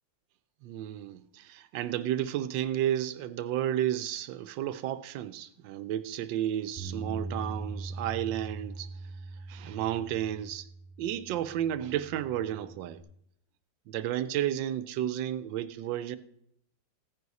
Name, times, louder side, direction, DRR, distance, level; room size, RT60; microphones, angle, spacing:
voice 1, 0.6-8.9 9.5-10.7 11.0-13.0 13.9-16.2, right 11 dB, 80° right, 1.3 m, -32 dB
Bass guitar, 6.8-13.0, right 3 dB, 10° left, 2.4 m, -41 dB
15.5 x 9.5 x 4.1 m
omnidirectional pair, 2.0 m